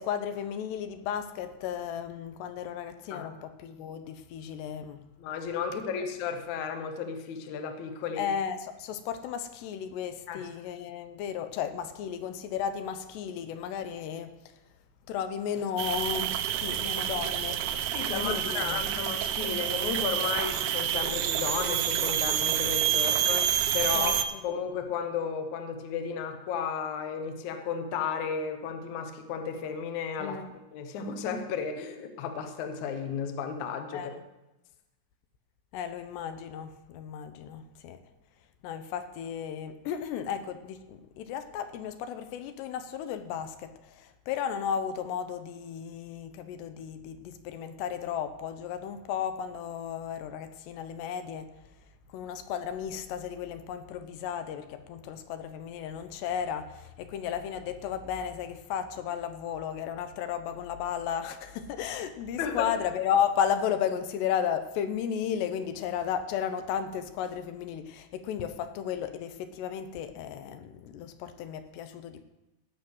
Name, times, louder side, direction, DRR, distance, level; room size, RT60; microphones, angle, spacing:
voice 1, 0.0-5.0 8.2-14.4 15.1-17.7 18.1-18.8 23.9-24.4 30.2-30.5 33.9-34.2 35.7-38.0 38.6-51.5 52.1-72.2, left 8 dB, 85° left, 9 dB, 3.0 m, -34 dB
voice 2, 5.2-8.2 10.3-10.5 17.9-24.2 24.4-30.4 30.7-34.1 62.4-62.7, left 6 dB, 65° left, 6 dB, 1.9 m, -33 dB
sound 1, 15.8-24.3, right 10 dB, 80° right, 2.4 m, -28 dB
17.0 x 6.8 x 6.1 m, 1.0 s
omnidirectional pair, 4.8 m